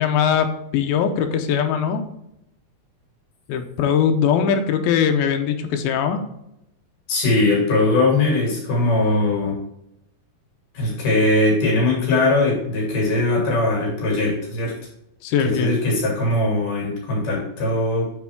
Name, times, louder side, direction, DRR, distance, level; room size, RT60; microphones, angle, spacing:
voice 1, 0.0-2.0 3.5-6.2 15.2-15.7, left 7 dB, 85° left, 5 dB, 2.5 m, -21 dB
voice 2, 7.1-9.6 10.7-14.8 15.4-18.1, left 2 dB, 65° left, -2 dB, 4.0 m, -20 dB
8.4 x 4.5 x 3.5 m, 0.82 s
omnidirectional pair, 4.2 m